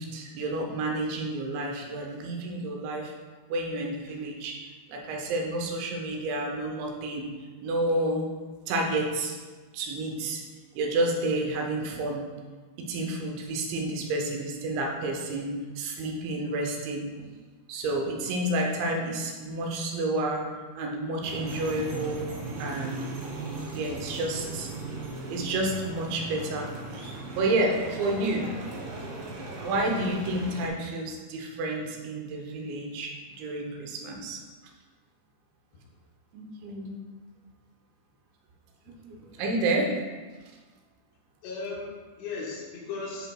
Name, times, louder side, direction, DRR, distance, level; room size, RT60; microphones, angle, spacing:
voice 1, 0.0-3.1 3.5-7.3 7.6-8.3 8.7-9.4 9.7-10.4 10.7-12.3 12.8-17.3 17.7-20.5 20.8-22.3 22.6-23.1 23.7-24.8 25.3-26.7 27.0-28.5 29.6-33.1 33.4-34.4 36.3-37.0 39.0-39.9, right 2 dB, 90° right, 1 dB, 3.2 m, -30 dB
sound 1, 21.2-30.7, right 2 dB, 70° right, 2.1 m, -37 dB
voice 2, 41.4-43.3, left 4 dB, 80° left, -3 dB, 3.2 m, -37 dB
10.5 x 4.4 x 2.3 m, 1.4 s
omnidirectional pair, 5.0 m